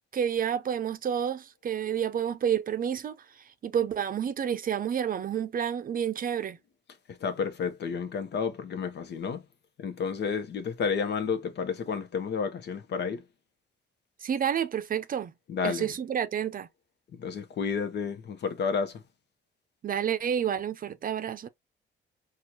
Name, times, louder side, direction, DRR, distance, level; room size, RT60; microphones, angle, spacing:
voice 1, 0.1-3.2 3.6-6.6 14.2-15.3 15.6-16.7 19.8-21.5, right 8 dB, 45° right, 0.6 m, -29 dB
voice 2, 7.2-9.4 9.8-13.2 15.5-15.9 17.2-19.0, left 6 dB, 60° left, 0.9 m, -31 dB
4.4 x 2.4 x 2.8 m
cardioid pair, 90°, 20 cm